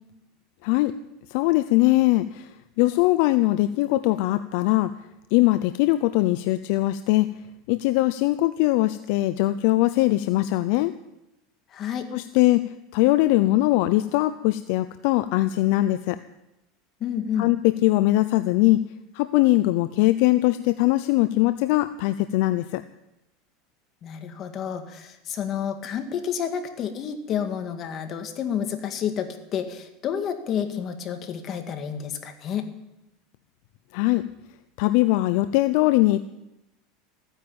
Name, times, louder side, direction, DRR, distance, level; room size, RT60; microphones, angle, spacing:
voice 1, 0.6-0.9 1.3-2.5 2.8-4.9 5.3-7.3 7.7-10.9 12.1-16.2 17.4-18.8 19.1-22.8 33.9-34.3 34.8-36.2, left 17 dB, 65° left, 12 dB, 0.6 m, -21 dB
voice 2, 11.7-12.1 17.0-17.5 24.0-32.7, left 8 dB, 40° left, 6 dB, 2.1 m, -30 dB
14.5 x 10.0 x 8.7 m, 0.91 s
supercardioid pair, 130°, 0 cm